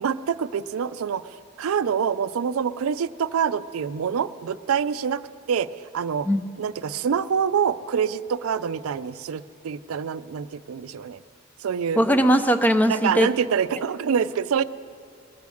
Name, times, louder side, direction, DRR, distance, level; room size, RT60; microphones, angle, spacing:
voice 1, 0.0-1.2 1.6-5.2 5.5-5.7 5.9-6.3 6.6-11.2 11.6-12.0 12.9-14.6, right 7 dB, 85° right, 15 dB, 0.4 m, -26 dB
voice 2, 12.0-13.3, equal, 10° left, 9 dB, 0.5 m, -19 dB
21.0 x 7.1 x 7.6 m, 2.6 s
head